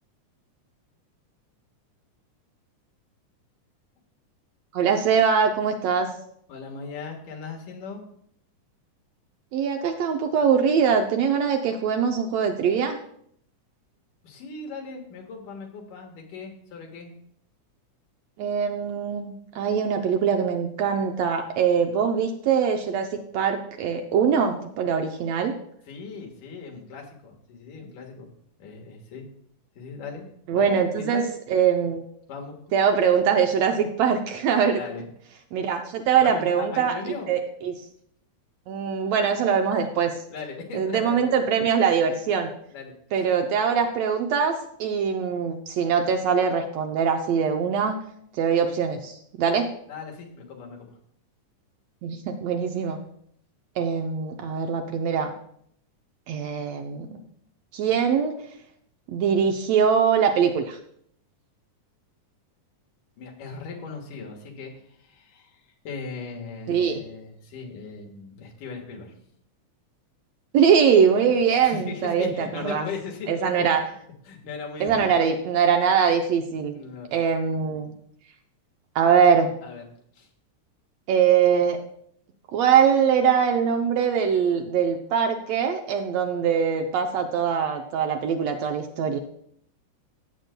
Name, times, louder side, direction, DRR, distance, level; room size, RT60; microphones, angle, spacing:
voice 1, 4.7-6.1 9.5-13.0 18.4-23.1 23.3-25.5 30.5-31.2 31.5-32.0 32.7-34.8 35.5-37.7 38.7-40.1 40.7-42.5 43.1-44.5 44.8-48.0 48.4-49.7 52.0-53.0 53.8-55.3 56.3-57.1 57.7-58.3 59.1-60.8 66.7-67.0 70.5-72.8 73.3-73.8 74.8-76.8 77.1-77.9 78.9-79.5 81.1-81.8 82.5-89.2, right 7 dB, 75° right, 4 dB, 1.6 m, -22 dB
voice 2, 6.5-8.0 14.2-17.1 25.9-28.3 28.6-29.3 29.8-31.3 32.3-32.6 34.8-35.1 36.2-37.3 40.3-41.4 42.7-43.3 49.9-50.9 63.2-69.1 71.6-73.5 74.3-75.1 76.7-77.1 79.6-79.8 80.1-80.3, left 5 dB, 85° left, 1 dB, 3.0 m, -38 dB
16.0 x 7.8 x 2.2 m, 0.68 s
omnidirectional pair, 3.5 m